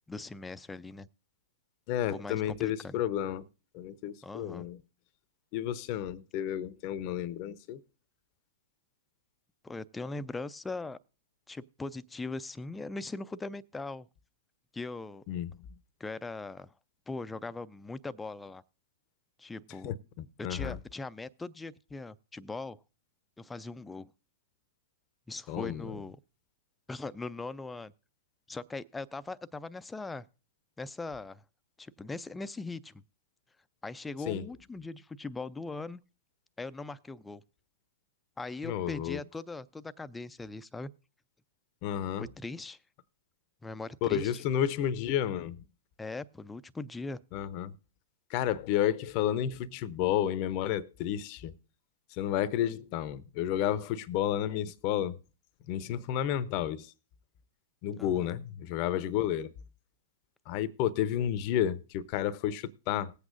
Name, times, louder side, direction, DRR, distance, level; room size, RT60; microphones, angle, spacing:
voice 1, 0.1-1.1 2.1-3.0 4.2-4.7 9.6-11.0 11.5-14.1 14.7-15.2 16.0-16.7 17.1-18.6 19.4-19.9 20.4-22.8 23.4-24.1 25.3-26.2 26.9-27.9 28.5-30.3 30.8-31.4 31.8-33.0 33.8-36.0 36.6-37.4 38.4-40.9 42.2-42.8 43.6-44.4 46.0-47.2 58.0-58.3, left 3 dB, 10° left, 0.5 m, -40 dB
voice 2, 1.9-3.5 3.7-4.8 5.5-7.8 15.3-15.5 19.8-20.8 25.5-25.9 34.3-34.4 38.6-39.2 41.8-42.3 44.0-45.6 47.3-47.7 48.3-51.5 52.1-55.2 55.7-56.9 57.8-59.5 60.5-63.1, left 10 dB, 45° left, 0.7 m, -31 dB
20.0 x 8.3 x 2.5 m
hypercardioid pair, 105°, 0 cm